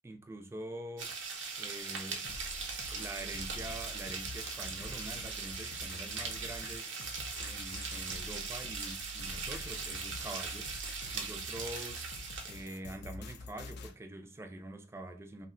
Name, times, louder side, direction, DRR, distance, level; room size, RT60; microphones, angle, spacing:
voice 1, 0.0-1.1 1.6-2.3 2.9-6.9 7.4-10.7 11.1-12.1 12.4-15.5, right 1 dB, 15° right, 0.3 m, -45 dB
sound 1, 1.0-12.7, right 5 dB, 85° right, 0.7 m, -40 dB
sound 2, 2.2-13.9, left 2 dB, 65° left, 0.4 m, -47 dB
2.5 x 2.1 x 3.6 m
head